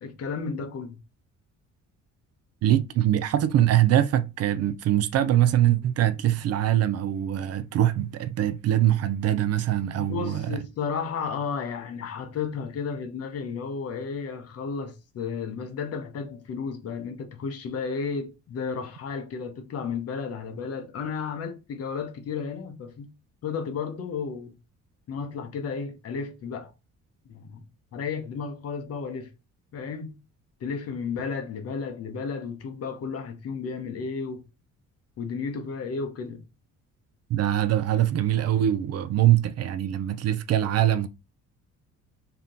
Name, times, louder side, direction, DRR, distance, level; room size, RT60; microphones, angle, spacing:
voice 1, 0.0-1.0 10.0-23.1 23.4-24.5 25.1-26.7 27.3-27.7 27.9-29.3 29.7-30.2 30.6-34.4 35.2-36.4, left 5 dB, 50° left, 0.9 m, -33 dB
voice 2, 2.6-10.6 37.3-41.1, right 12 dB, 55° right, 0.4 m, -23 dB
3.5 x 2.9 x 3.7 m
cardioid pair, 150°, 30 cm